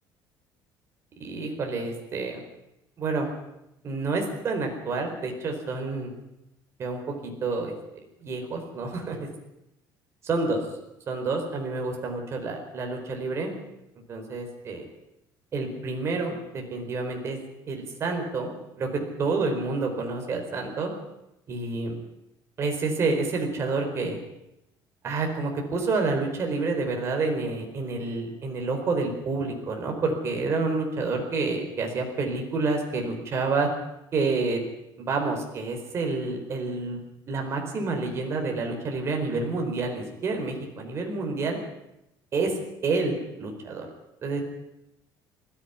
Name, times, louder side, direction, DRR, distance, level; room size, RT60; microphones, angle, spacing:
voice 1, 1.2-2.4 3.0-3.3 3.8-6.1 6.8-7.7 8.2-9.2 10.2-10.6 11.1-13.5 14.1-14.9 15.5-17.4 17.7-18.5 18.8-20.9 21.5-21.9 22.6-24.2 25.0-33.7 34.1-34.6 35.0-37.0 37.3-41.6 42.3-42.5 42.8-43.1 43.4-43.9 44.2-44.4, right 3 dB, 35° right, 2 dB, 4.6 m, -28 dB
20.0 x 14.0 x 9.8 m, 0.88 s
cardioid pair, 165°, 8 cm